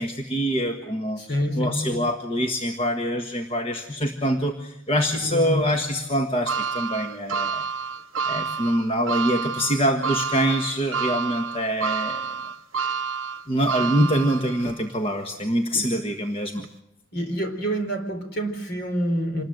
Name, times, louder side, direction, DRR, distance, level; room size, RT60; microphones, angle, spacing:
voice 1, 0.0-7.6 8.3-12.3 13.5-16.6, equal, 25° left, 3 dB, 1.6 m, -25 dB
voice 2, 1.2-2.0 5.2-5.7 13.8-14.1 15.7-15.8 17.1-19.4, equal, 50° left, 6 dB, 4.2 m, -27 dB
sound 1, 6.5-14.8 15.3-15.4 16.6-16.7, right 5 dB, 75° right, 0.8 m, -29 dB
27.0 x 20.5 x 7.9 m, 0.84 s
head